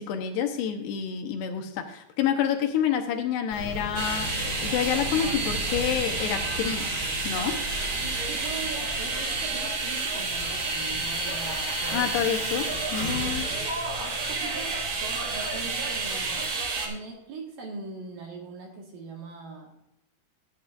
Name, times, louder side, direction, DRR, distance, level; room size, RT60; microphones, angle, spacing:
voice 1, 0.0-4.3 4.6-7.6 11.9-13.5, left 9 dB, 75° left, 5 dB, 2.7 m, -28 dB
sound 1, 3.5-16.5, left 2 dB, 40° left, 1.5 m, -38 dB
sound 2, 3.9-16.9, right 3 dB, 80° right, 1.1 m, -30 dB
voice 2, 8.0-12.3 13.2-16.5 16.8-19.7, right 4 dB, 60° right, 1 dB, 2.7 m, -41 dB
14.5 x 9.2 x 2.4 m, 0.82 s
omnidirectional pair, 5.3 m